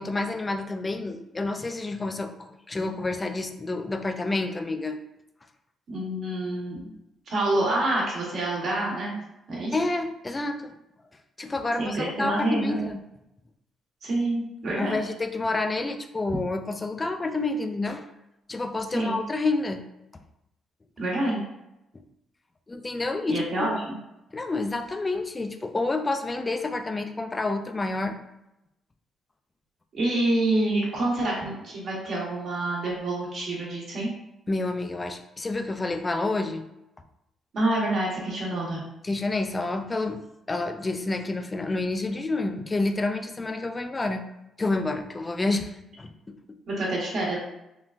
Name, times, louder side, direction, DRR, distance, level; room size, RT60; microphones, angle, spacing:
voice 1, 0.0-2.3 2.7-5.0 9.5-10.7 11.4-13.0 14.8-18.1 18.5-19.8 21.9-22.0 22.7-23.7 24.3-28.2 34.5-36.7 39.0-44.2 44.6-46.6, left 2 dB, 25° left, 7 dB, 0.3 m, -29 dB
voice 2, 5.9-6.9 7.3-9.1 9.5-9.7 11.8-12.8 14.0-15.0 18.9-19.2 21.0-21.4 23.3-24.0 29.9-34.1 37.5-38.8 46.7-47.4, right 1 dB, 60° right, -4 dB, 1.3 m, -27 dB
3.7 x 2.3 x 2.5 m, 0.88 s
cardioid pair, 90°, 0 cm